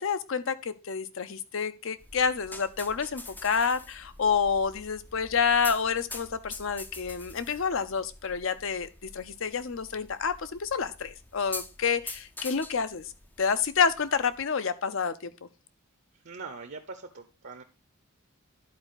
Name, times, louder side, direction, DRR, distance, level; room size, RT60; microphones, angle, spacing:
voice 1, 0.0-13.1 13.4-15.5, left 6 dB, 65° left, 13 dB, 0.6 m, -28 dB
sound 1, 2.0-14.4, left 2 dB, 10° left, 0.4 m, -45 dB
voice 2, 16.1-17.6, right 4 dB, 55° right, 7 dB, 0.7 m, -42 dB
11.5 x 4.5 x 3.9 m, 0.29 s
head